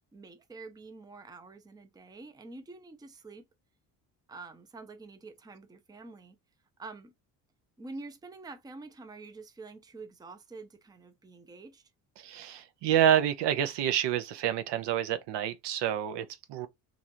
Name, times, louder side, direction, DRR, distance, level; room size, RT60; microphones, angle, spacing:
voice 1, 0.1-3.5 4.3-6.4 6.8-7.1 7.8-11.8, right 3 dB, 10° right, 0.5 m, -47 dB
voice 2, 12.2-16.7, right 10 dB, 65° right, 0.7 m, -28 dB
3.0 x 2.5 x 2.6 m
supercardioid pair, 80°, 45 cm